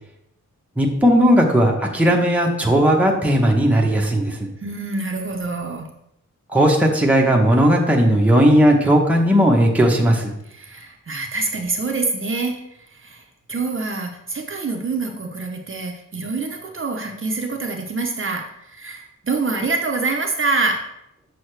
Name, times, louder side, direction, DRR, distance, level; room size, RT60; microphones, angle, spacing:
voice 1, 0.8-4.5 6.5-10.3, equal, 5° right, -1 dB, 0.9 m, -16 dB
voice 2, 4.6-5.9 10.5-20.8, right 3 dB, 40° right, 2 dB, 0.7 m, -26 dB
7.0 x 6.3 x 3.2 m, 0.80 s
wide cardioid pair, 170°, 32 cm